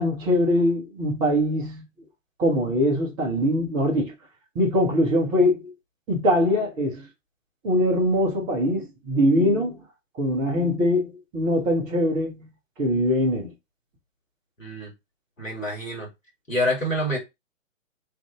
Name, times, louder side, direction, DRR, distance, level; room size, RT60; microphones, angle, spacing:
voice 1, 0.0-1.8 2.4-4.1 4.5-5.7 6.1-7.1 7.6-9.8 10.2-12.5 12.8-13.5, equal, 10° right, 0.5 m, -22 dB
voice 2, 14.6-14.9 15.4-16.1 16.5-17.2, equal, 80° left, 2.0 m, -27 dB
3.3 x 2.4 x 3.4 m
figure-of-eight pair, 120°, 39 cm